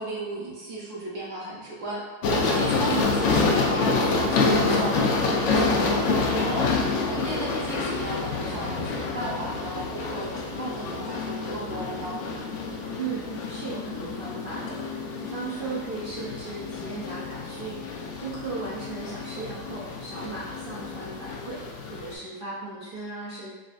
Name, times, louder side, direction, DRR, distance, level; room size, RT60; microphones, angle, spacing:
voice 1, 0.0-2.1 2.4-12.2, right 1 dB, 60° right, -5 dB, 1.0 m, -35 dB
sound 1, 2.2-22.1, left 3 dB, 75° left, 0.7 m, -28 dB
sound 2, 3.0-21.6, left 5 dB, 90° left, 1.3 m, -39 dB
voice 2, 13.0-21.6 21.9-23.5, right 4 dB, 80° right, -7 dB, 0.5 m, -36 dB
5.0 x 2.3 x 2.5 m, 1.3 s
omnidirectional pair, 1.7 m